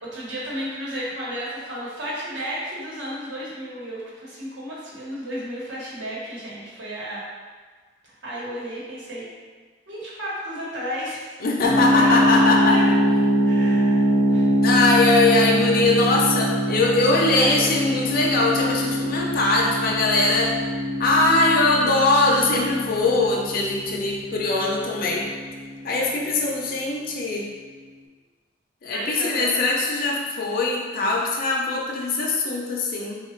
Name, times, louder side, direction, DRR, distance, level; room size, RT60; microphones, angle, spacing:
voice 1, 0.0-7.2 8.0-9.3 9.9-11.4 12.0-13.0 13.4-14.0 14.3-14.5 16.9-17.6 28.9-29.6, equal, 75° right, -7 dB, 1.1 m, -33 dB
voice 2, 11.4-12.8 14.6-20.6 21.0-25.3 25.8-27.5 28.8-33.2, left 2 dB, 50° left, -2 dB, 0.5 m, -21 dB
sound 1, 11.6-26.4, equal, 5° left, 0.5 m, -23 dB
3.8 x 2.4 x 3.1 m, 1.5 s
head